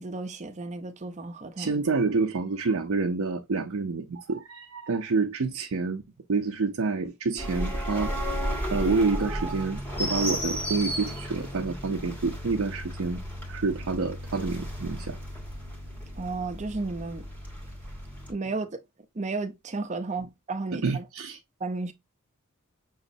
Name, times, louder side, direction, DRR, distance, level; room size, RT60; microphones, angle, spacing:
voice 1, 0.0-1.7 16.2-17.2 18.3-18.7 19.2-21.0 21.6-21.9, right 3 dB, 35° right, 0.6 m, -33 dB
voice 2, 1.6-6.0 6.3-8.1 8.7-13.2 13.5-15.2 20.7-21.4, right 4 dB, 80° right, 0.6 m, -28 dB
sound 1, 7.4-18.3, equal, 10° left, 1.6 m, -34 dB
6.3 x 3.0 x 2.6 m
head